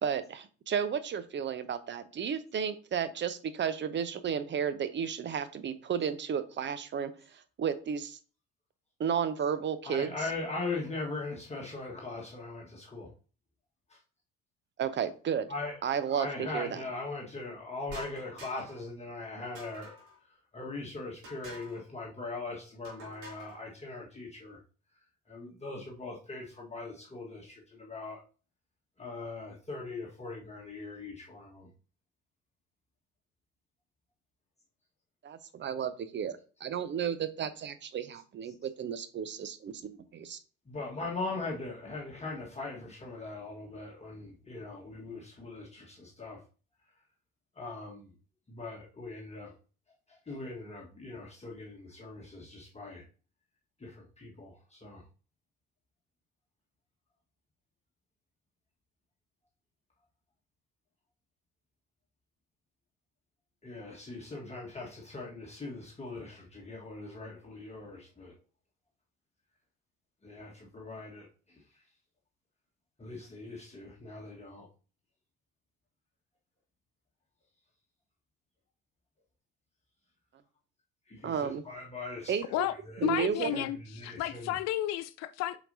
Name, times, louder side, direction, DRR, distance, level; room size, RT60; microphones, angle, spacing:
voice 1, 0.0-8.2 9.0-10.3 14.8-15.5 15.8-16.8 35.2-40.4 81.2-81.6 82.3-82.5 83.0-83.6, right 7 dB, 30° right, 0.8 m, -33 dB
voice 2, 9.8-13.1 13.9-14.0 15.5-15.8 16.1-19.9 20.5-24.6 25.3-28.2 29.0-31.7 40.7-46.4 47.6-48.1 48.5-49.5 50.1-53.0 53.8-55.0 63.6-68.3 70.2-71.3 73.0-74.7 81.1-82.3 82.7-83.1 83.5-84.5, left 3 dB, 15° left, 1.5 m, -40 dB
sound 1, 17.9-18.8 19.6-20.2 21.2-21.8 22.8-23.6, equal, 70° right, 2.6 m, -48 dB
voice 3, 83.0-85.6, left 14 dB, 45° left, 0.5 m, -32 dB
7.5 x 5.0 x 2.7 m
figure-of-eight pair, 60°, 40 cm